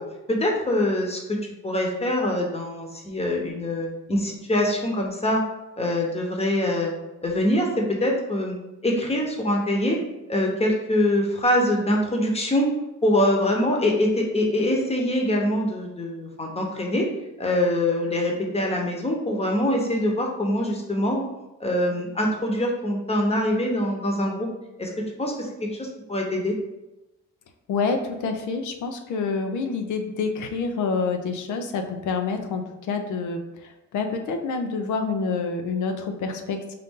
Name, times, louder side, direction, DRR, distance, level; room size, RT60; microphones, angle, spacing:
voice 1, 0.3-1.4 1.6-5.4 5.8-6.9 7.2-8.6 8.8-10.0 10.3-12.7 13.0-17.1 17.4-21.3 21.6-24.5 24.8-24.9 25.2-26.5, left 1 dB, 20° left, 0 dB, 1.0 m, -24 dB
voice 2, 27.7-36.7, left 4 dB, 80° left, 6 dB, 0.6 m, -27 dB
4.1 x 2.6 x 3.6 m, 0.97 s
cardioid pair, 90°, 30 cm